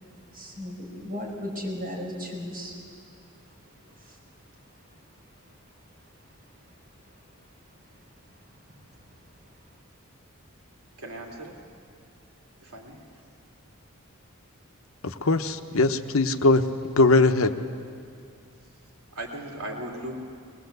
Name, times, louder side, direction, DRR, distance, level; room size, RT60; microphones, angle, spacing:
voice 1, 0.0-4.6 4.9-5.0 5.7-6.0 6.4-6.5 8.0-9.0, left 1 dB, 40° right, -3 dB, 5.7 m, -39 dB
voice 2, 11.0-11.6 12.6-13.0 19.1-20.1, right 1 dB, 80° right, 0 dB, 3.0 m, -37 dB
voice 3, 15.0-16.6 17.0-17.6, left 3 dB, 70° left, 8 dB, 0.9 m, -20 dB
22.5 x 20.0 x 8.0 m, 2.3 s
head